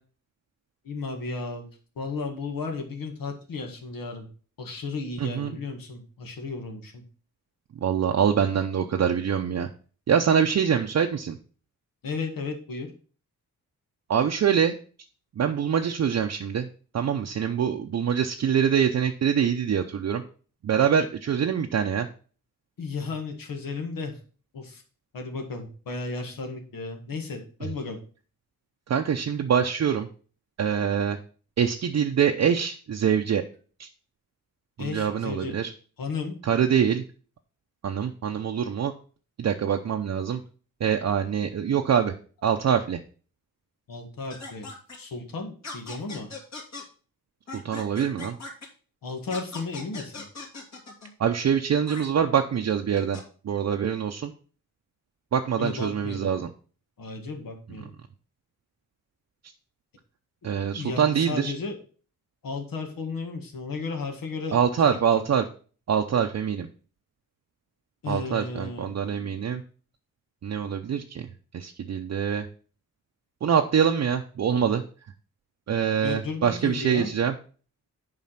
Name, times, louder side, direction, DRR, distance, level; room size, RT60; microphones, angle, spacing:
voice 1, 0.8-1.7 1.9-4.3 4.6-7.0 12.0-12.9 22.8-24.2 24.5-24.8 25.1-28.0 34.8-35.6 36.0-36.3 43.9-44.7 45.0-46.3 49.0-50.3 55.6-56.3 57.0-57.9 60.7-61.8 62.4-64.6 64.8-65.0 68.0-68.9 76.0-77.1, left 4 dB, 85° left, 3 dB, 1.8 m, -34 dB
voice 2, 5.2-5.6 7.8-9.7 10.1-11.4 14.1-14.7 15.4-16.7 16.9-20.2 20.6-22.1 28.9-30.1 30.6-31.2 31.6-33.4 33.8-33.9 34.8-35.7 36.4-37.0 37.8-38.9 39.4-40.4 40.8-42.1 42.4-43.0 47.5-48.4 51.2-54.3 55.3-56.5 60.4-61.5 64.5-65.5 65.9-66.7 68.1-69.6 70.4-71.3 71.5-72.5 73.4-74.8 75.7-77.3, right 8 dB, 55° right, 3 dB, 0.6 m, -24 dB
sound 1, 44.3-45.0 45.6-46.8 47.5-48.7 49.3-51.1 51.9-52.1 53.0-53.2, left 3 dB, 55° left, 2.7 m, -39 dB
7.5 x 4.9 x 5.7 m, 0.40 s
wide cardioid pair, 105°, 33 cm